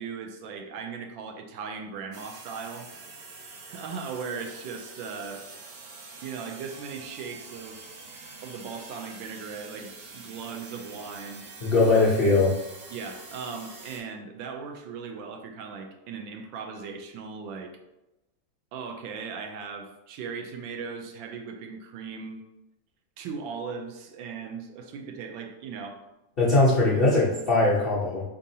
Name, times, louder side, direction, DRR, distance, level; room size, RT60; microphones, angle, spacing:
voice 1, 0.0-2.9 3.4-5.4 6.2-7.8 8.4-11.5 12.9-17.7 18.7-22.4 23.2-26.0, right 5 dB, 90° right, 4 dB, 1.4 m, -38 dB
sound 1, 2.1-14.0, right 3 dB, 70° right, 1.3 m, -45 dB
voice 2, 11.6-12.5 26.4-28.2, left 2 dB, 65° left, -8 dB, 0.5 m, -21 dB
4.0 x 3.5 x 2.7 m, 0.95 s
omnidirectional pair, 2.1 m